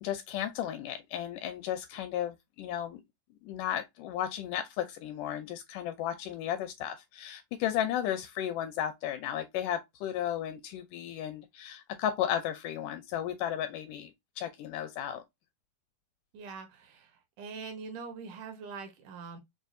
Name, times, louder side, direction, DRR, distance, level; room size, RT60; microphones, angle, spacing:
voice 1, 0.0-3.0 3.4-15.2, left 10 dB, 80° left, 1.9 m, -34 dB
voice 2, 16.3-17.1 17.4-19.4, right 5 dB, 75° right, 2.3 m, -43 dB
6.2 x 2.3 x 2.5 m
omnidirectional pair, 4.0 m